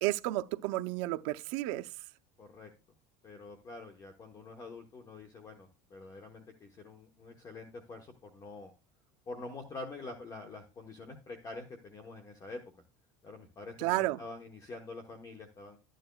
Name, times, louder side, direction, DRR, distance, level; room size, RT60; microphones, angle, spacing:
voice 1, 0.0-1.9 13.8-14.2, right 17 dB, 70° right, 0.6 m, -31 dB
voice 2, 2.4-2.7 3.2-8.7 9.3-12.6 13.2-15.8, left 3 dB, 20° left, 1.1 m, -46 dB
12.5 x 9.1 x 2.3 m
cardioid pair, 170°, 16 cm